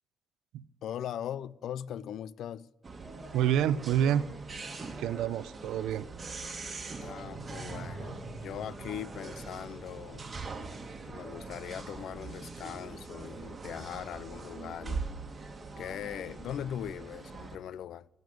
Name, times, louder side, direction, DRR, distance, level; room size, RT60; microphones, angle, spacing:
voice 1, 0.8-2.7 7.0-8.2 8.4-10.2 11.0-15.0 15.8-18.1, left 10 dB, 75° left, 0.3 m, -40 dB
sound 1, 2.8-17.6, right 4 dB, 30° right, 1.6 m, -42 dB
voice 2, 3.3-4.2 5.0-6.1, right 10 dB, 90° right, 0.5 m, -28 dB
sound 2, 7.2-15.4, right 2 dB, 45° left, 3.6 m, -49 dB
15.5 x 5.3 x 9.3 m
cardioid pair, 90°, 0 cm